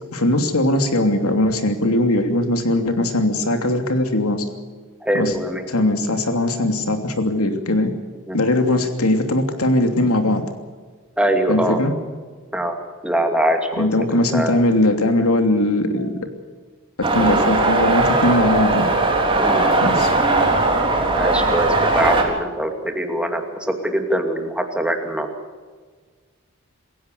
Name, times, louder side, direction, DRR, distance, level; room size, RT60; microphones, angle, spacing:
voice 1, 0.1-4.4 5.1-5.3 5.7-7.9 8.3-10.4 11.5-11.9 13.8-16.1 17.0-18.9 19.8-20.1, left 1 dB, 90° left, 6 dB, 3.0 m, -20 dB
voice 2, 5.0-5.7 8.3-8.8 11.2-11.8 12.5-12.8 13.0-14.6 19.4-19.7 20.8-25.3, right 1 dB, 5° right, 4 dB, 2.4 m, -23 dB
sound 1, 17.0-22.2, right 2 dB, 25° right, 3.8 m, -18 dB
27.0 x 16.0 x 6.9 m, 1.5 s
head